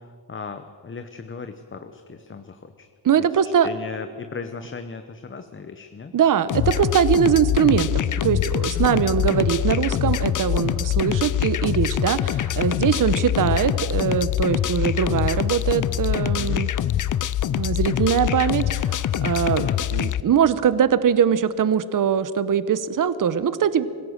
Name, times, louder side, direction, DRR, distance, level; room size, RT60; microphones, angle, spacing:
voice 1, 0.0-2.9 3.2-6.1 8.6-8.9 16.4-16.7 19.6-19.8, left 5 dB, 25° left, 8 dB, 0.9 m, -37 dB
voice 2, 3.0-3.7 6.1-16.7 17.6-23.9, right 8 dB, 40° right, 14 dB, 1.0 m, -22 dB
sound 1, 6.5-20.2, left 11 dB, 40° left, 0.5 m, -24 dB
25.5 x 16.0 x 6.5 m, 2.2 s
cardioid pair, 120°, 48 cm